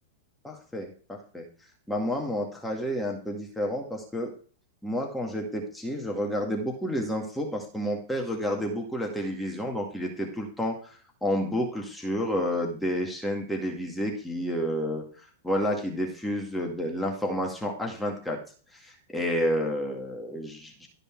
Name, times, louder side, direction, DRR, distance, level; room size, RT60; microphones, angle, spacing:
voice 1, 0.4-1.5 1.9-4.3 4.8-18.4 18.7-20.9, equal, 5° left, 0 dB, 2.0 m, -30 dB
12.5 x 5.3 x 4.6 m, 0.42 s
figure-of-eight pair, 100°, 0 cm